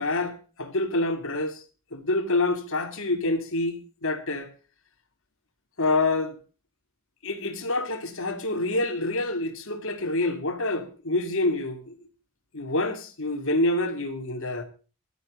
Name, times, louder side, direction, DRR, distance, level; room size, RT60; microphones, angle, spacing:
voice 1, 0.0-1.6 1.9-4.5 5.8-6.4 7.2-12.0 12.5-14.6, left 2 dB, 65° left, 2.7 m, -27 dB
16.0 x 12.5 x 3.8 m
head